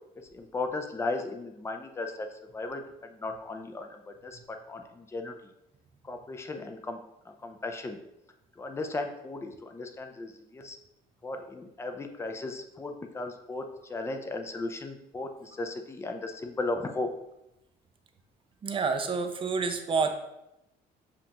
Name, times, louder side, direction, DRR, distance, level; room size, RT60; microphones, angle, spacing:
voice 1, 0.3-2.3 2.5-4.4 4.7-5.3 6.0-7.0 7.4-8.0 8.6-10.8 11.2-17.1, left 2 dB, 15° left, 5 dB, 0.5 m, -36 dB
voice 2, 18.6-20.1, right 4 dB, 30° right, 6 dB, 0.5 m, -28 dB
7.1 x 2.5 x 2.9 m, 0.86 s
cardioid pair, 110°, 17 cm